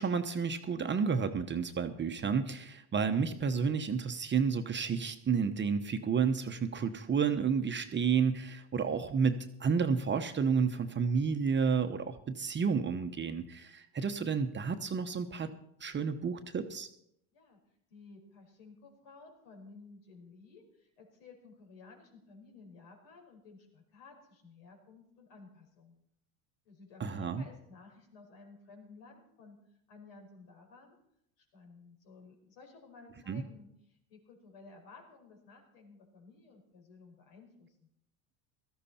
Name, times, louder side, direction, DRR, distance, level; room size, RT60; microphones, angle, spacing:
voice 1, 0.0-15.5 15.8-16.9 27.0-27.4 33.3-33.4, right 6 dB, 25° right, 7 dB, 0.9 m, -31 dB
voice 2, 17.9-25.9 26.6-29.6 29.9-31.0 31.4-37.7, left 4 dB, 70° left, 3 dB, 5.0 m, -55 dB
17.0 x 13.5 x 4.3 m, 0.77 s
supercardioid pair, 110°, 47 cm